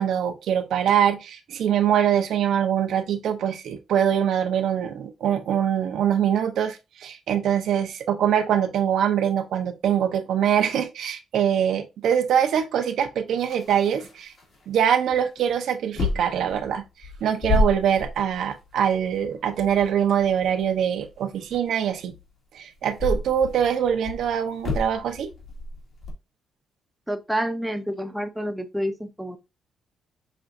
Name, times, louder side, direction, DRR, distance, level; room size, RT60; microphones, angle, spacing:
voice 1, 0.0-14.3 14.7-16.8 17.2-22.1 22.5-25.3, right 9 dB, 75° right, 0.6 m, -23 dB
sound 1, 13.4-14.8 15.1-15.5 16.0-22.3 22.8-26.1, left 2 dB, 50° left, 1.8 m, -30 dB
voice 2, 27.1-29.4, equal, 5° right, 0.6 m, -28 dB
5.9 x 2.5 x 2.5 m
cardioid pair, 90°, 0 cm